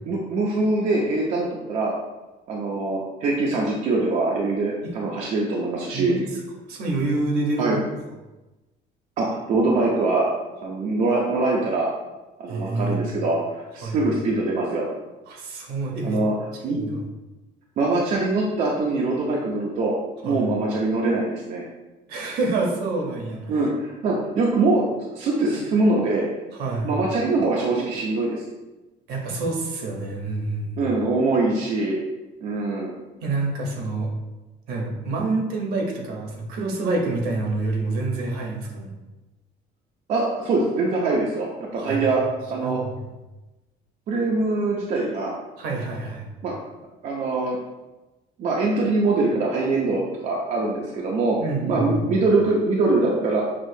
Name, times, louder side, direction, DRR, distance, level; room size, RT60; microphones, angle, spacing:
voice 1, 0.0-1.9 2.5-6.2 7.6-7.8 9.2-10.3 10.6-11.9 12.4-14.9 16.0-16.3 16.6-16.9 17.8-20.0 20.2-21.7 23.5-26.3 26.8-28.4 30.8-32.0 32.4-32.9 40.1-42.2 42.5-42.8 44.1-45.3 46.4-46.5 47.0-47.6 48.4-51.4 51.7-53.4, right 3 dB, 45° right, -3 dB, 0.5 m, -23 dB
voice 2, 5.9-6.3 6.7-7.8 12.5-13.1 13.8-14.0 15.3-16.2 16.6-17.0 20.2-20.5 22.1-23.5 26.5-26.9 29.1-30.9 33.2-34.1 34.7-38.9 41.7-42.0 42.6-43.1 45.6-46.3 51.4-52.1, right 2 dB, 70° right, 0 dB, 0.9 m, -27 dB
6.2 x 2.4 x 2.7 m, 1.1 s
cardioid pair, 170°, 17 cm